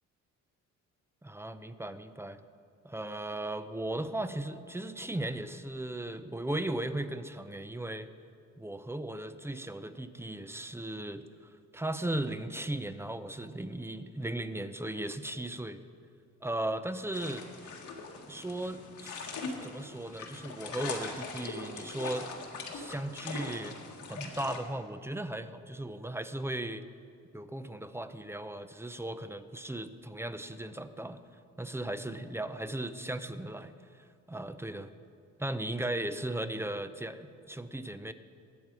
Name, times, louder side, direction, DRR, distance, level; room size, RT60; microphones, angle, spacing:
voice 1, 1.2-2.4 2.8-8.1 8.6-15.8 16.4-17.5 18.3-22.3 22.7-23.8 24.1-26.8 27.3-31.2 31.6-34.9 35.4-38.1, right 1 dB, 10° right, 11 dB, 0.6 m, -37 dB
sound 1, 17.1-24.6, left 4 dB, 75° left, 1.8 m, -41 dB
20.5 x 7.6 x 4.7 m, 2.3 s
cardioid pair, 90°, 30 cm